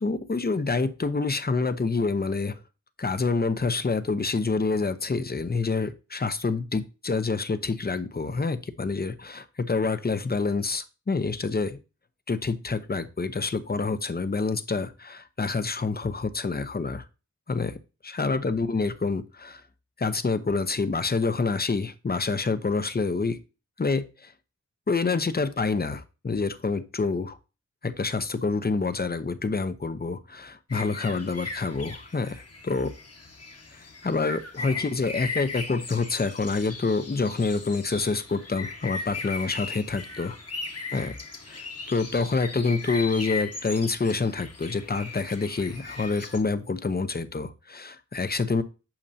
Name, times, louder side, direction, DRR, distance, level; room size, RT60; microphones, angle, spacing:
voice 1, 0.0-2.6 3.0-11.8 12.3-17.0 17.5-17.8 18.0-19.6 20.0-23.4 23.8-24.3 24.9-27.4 27.8-32.9 33.7-40.4 40.9-41.2 41.5-48.6, left 4 dB, 30° left, 11 dB, 0.7 m, -27 dB
sound 1, 30.7-46.4, left 3 dB, 55° left, 1.4 m, -38 dB
8.8 x 6.4 x 2.8 m, 0.30 s
wide cardioid pair, 85°, 30 cm